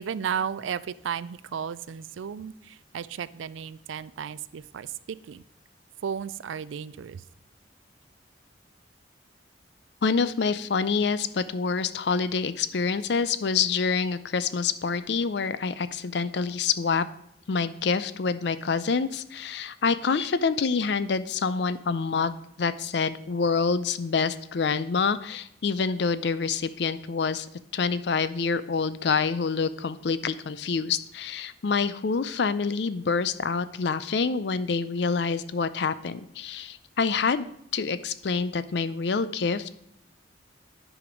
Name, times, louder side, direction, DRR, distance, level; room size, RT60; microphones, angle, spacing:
voice 1, 0.0-5.4 6.0-7.2, right 7 dB, 85° right, 18 dB, 0.4 m, -34 dB
voice 2, 10.0-17.0 17.5-27.5 27.7-37.5 37.7-39.7, left 5 dB, 65° left, 14 dB, 0.5 m, -27 dB
9.9 x 5.0 x 5.1 m, 0.76 s
head